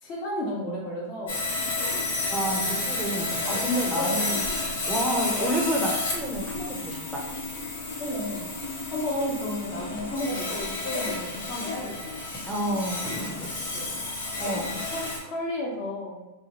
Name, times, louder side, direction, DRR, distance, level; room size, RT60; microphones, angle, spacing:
voice 1, 0.0-1.4 2.5-2.9 4.0-4.2 8.0-8.5 8.9-12.2 13.7-13.9 14.7-16.2, left 1 dB, 45° left, -3 dB, 0.9 m, -33 dB
Sawing, 1.3-15.2, left 2 dB, 90° left, 1.0 m, -31 dB
voice 2, 2.3-4.4 4.9-7.2 12.5-13.5 14.4-14.7, equal, 10° right, -1 dB, 0.5 m, -29 dB
sound 1, 3.6-10.0, left 2 dB, 15° left, 1.0 m, -44 dB
2.8 x 2.2 x 2.9 m, 1.0 s
supercardioid pair, 135°, 0 cm